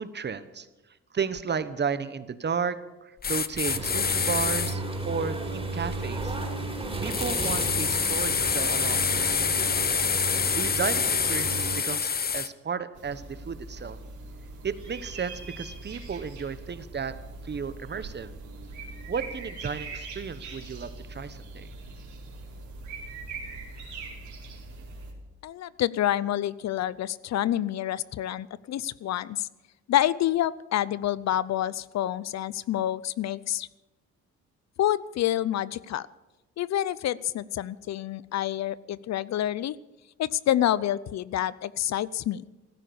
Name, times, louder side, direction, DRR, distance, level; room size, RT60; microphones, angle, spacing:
voice 1, 0.0-6.4 7.0-9.8 10.2-14.0 14.6-17.1 17.4-18.3 19.1-21.7, right 6 dB, 35° right, 13 dB, 1.1 m, -33 dB
sound 1, 3.2-4.7 7.1-12.5, left 6 dB, 30° left, 0.8 m, -26 dB
sound 2, 3.7-11.8, right 2 dB, 15° right, 4.4 m, -33 dB
sound 3, 12.9-25.1, right 3 dB, 70° right, 4.2 m, -41 dB
voice 2, 25.4-29.5 29.9-33.7 34.8-36.1 36.6-39.8 40.2-42.4, left 12 dB, 60° left, 20 dB, 0.6 m, -28 dB
15.0 x 13.5 x 7.0 m, 1.1 s
cardioid pair, 90°, 30 cm